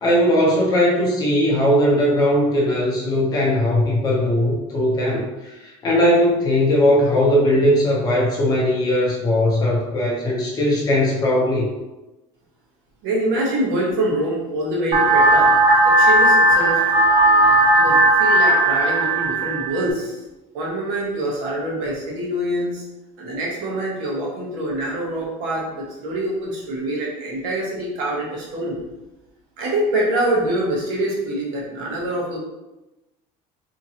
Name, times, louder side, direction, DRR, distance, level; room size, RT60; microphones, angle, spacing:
voice 1, 0.0-11.7 17.7-17.9, left 1 dB, 30° left, -3 dB, 0.7 m, -19 dB
voice 2, 13.0-15.5 15.8-16.8 17.8-20.2 20.5-22.8 23.2-28.8 29.6-32.4, right 1 dB, 80° right, -3 dB, 1.0 m, -25 dB
sound 1, 14.9-19.9, right 2 dB, 45° right, 0.6 m, -16 dB
2.9 x 2.5 x 2.8 m, 1.0 s
cardioid pair, 170°, 14 cm